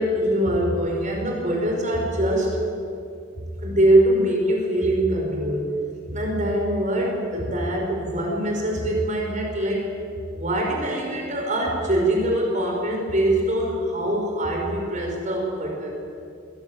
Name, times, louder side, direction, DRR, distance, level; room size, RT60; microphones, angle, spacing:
voice 1, 0.0-2.6 3.6-5.7 6.1-9.9 10.3-15.9, right 1 dB, 40° right, 0 dB, 5.6 m, -23 dB
22.5 x 17.5 x 9.1 m, 2.6 s
head